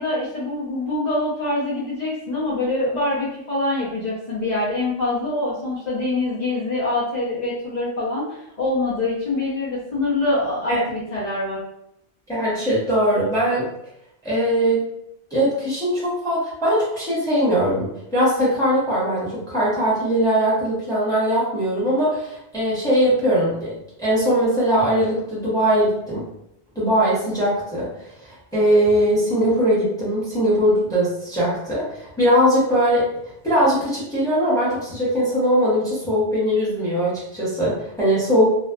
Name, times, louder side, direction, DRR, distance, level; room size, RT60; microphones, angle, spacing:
voice 1, 0.0-11.6, left 2 dB, 45° left, -10 dB, 0.8 m, -25 dB
voice 2, 12.3-13.7 14.2-14.8 15.3-23.7 24.0-26.2 26.7-27.9 28.2-33.0 33.4-38.7, equal, 5° left, -8 dB, 0.9 m, -20 dB
2.4 x 2.4 x 2.2 m, 0.79 s
omnidirectional pair, 1.1 m